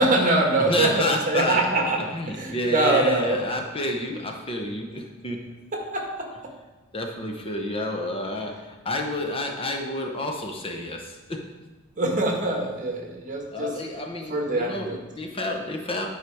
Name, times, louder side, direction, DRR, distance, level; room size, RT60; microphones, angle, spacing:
voice 1, 0.0-2.0 2.3-3.4 5.7-6.3 12.0-13.7 14.3-15.0, right 2 dB, 40° right, 1 dB, 1.4 m, -23 dB
voice 2, 0.6-1.6 2.1-5.5 6.9-11.5 13.5-16.1, left 1 dB, 25° left, 2 dB, 0.8 m, -29 dB
9.5 x 5.0 x 4.7 m, 1.2 s
head